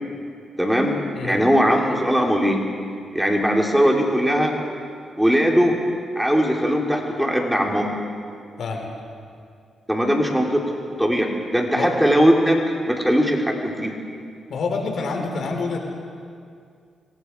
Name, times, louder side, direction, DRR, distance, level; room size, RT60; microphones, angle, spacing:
voice 1, 0.6-2.6 3.1-4.5 5.2-5.8 6.2-7.9 9.9-12.6 12.9-13.9, equal, 5° right, 0 dB, 3.7 m, -20 dB
voice 2, 14.5-15.8, left 4 dB, 70° left, 2 dB, 4.1 m, -27 dB
25.0 x 24.5 x 4.8 m, 2.3 s
cardioid pair, 65°, 0 cm